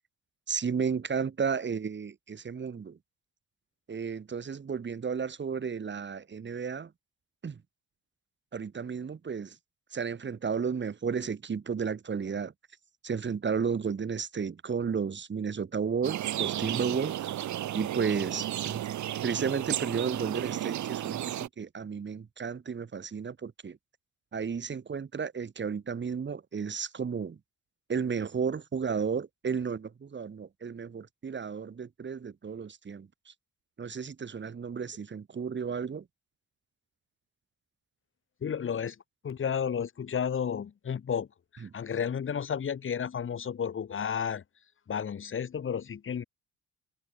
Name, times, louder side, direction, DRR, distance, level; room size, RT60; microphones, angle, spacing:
voice 1, 0.5-3.0 3.9-6.9 7.4-7.6 8.5-9.6 9.9-12.5 13.0-17.3 17.7-18.9 19.2-23.8 24.3-27.4 27.9-33.3 33.8-36.0, right 6 dB, 40° right, 2.6 m, -33 dB
sound 1, 16.0-21.5, right 12 dB, 70° right, 1.8 m, -33 dB
voice 2, 38.4-39.0 39.2-41.3 41.5-44.4 44.9-46.2, left 7 dB, 45° left, 1.6 m, -32 dB
cardioid pair, 90°, 30 cm